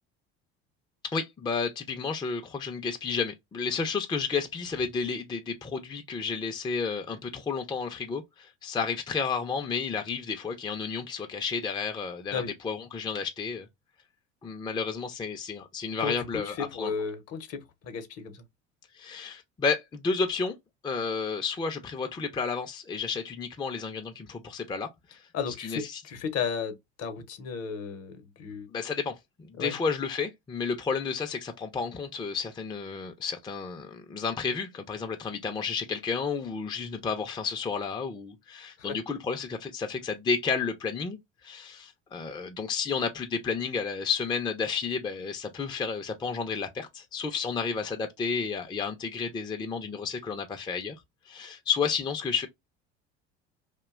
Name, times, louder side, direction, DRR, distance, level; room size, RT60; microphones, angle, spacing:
voice 1, 1.1-13.7 14.4-16.9 18.9-20.5 20.8-25.3 25.6-26.0 28.7-51.0 51.3-52.5, left 5 dB, 15° left, 0.4 m, -31 dB
voice 2, 16.0-18.4 25.3-28.7 29.6-29.8 38.8-39.0, left 6 dB, 50° left, 0.7 m, -34 dB
2.6 x 2.2 x 2.3 m
supercardioid pair, 85°, 33 cm